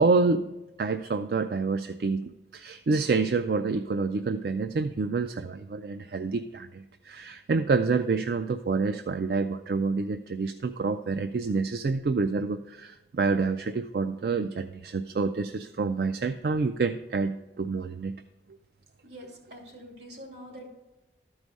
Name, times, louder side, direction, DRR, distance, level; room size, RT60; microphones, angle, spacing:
voice 1, 0.0-18.2, right 4 dB, 60° right, 8 dB, 0.4 m, -28 dB
voice 2, 19.0-20.7, equal, 80° right, 0 dB, 2.6 m, -45 dB
12.5 x 4.8 x 5.3 m, 1.0 s
head